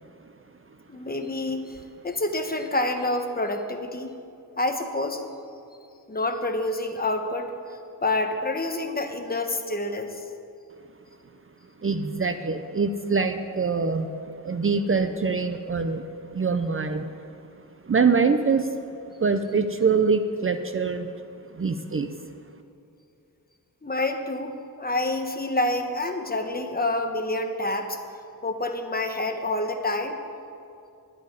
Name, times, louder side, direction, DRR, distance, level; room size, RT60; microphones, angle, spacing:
voice 1, 0.9-1.8 2.0-4.1 4.6-5.2 6.1-10.1 23.8-28.0 28.4-30.2, left 2 dB, 25° left, 5 dB, 1.1 m, -28 dB
voice 2, 11.8-14.1 14.4-16.0 16.3-17.1 17.9-18.7 19.2-21.1 21.5-22.1, right 5 dB, 35° right, 8 dB, 0.6 m, -24 dB
11.5 x 8.5 x 9.6 m, 2.6 s
wide cardioid pair, 120°, 38 cm